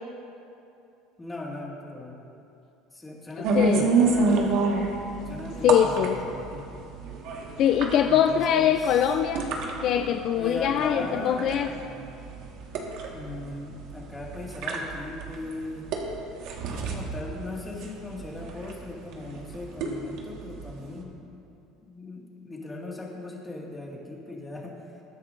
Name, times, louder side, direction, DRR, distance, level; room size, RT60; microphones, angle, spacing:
voice 1, 1.2-2.2 2.9-4.5 5.3-6.8 8.0-9.0 10.4-11.6 13.1-15.9 16.7-21.1 21.8-24.8, left 2 dB, 10° left, -2 dB, 2.0 m, -38 dB
sound 1, 3.4-21.0, right 4 dB, 65° right, 1.6 m, -29 dB
voice 2, 3.5-4.0 5.6-6.3 7.6-9.5 9.8-11.7, left 9 dB, 50° left, 6 dB, 0.5 m, -23 dB
21.5 x 10.0 x 2.6 m, 2.7 s
cardioid pair, 130°, 0 cm